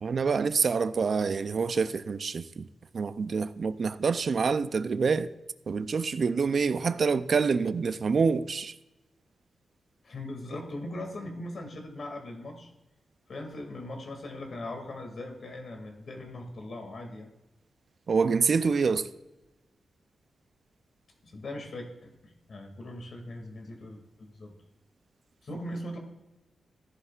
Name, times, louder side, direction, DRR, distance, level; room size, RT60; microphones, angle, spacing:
voice 1, 0.0-2.7 2.9-5.3 5.7-8.8 18.1-19.1, right 5 dB, 60° right, 0.5 m, -26 dB
voice 2, 10.0-12.7 13.3-17.3 21.2-24.5 25.4-26.0, left 1 dB, 60° left, 2.3 m, -40 dB
14.5 x 10.5 x 2.4 m
cardioid pair, 70°, 0 cm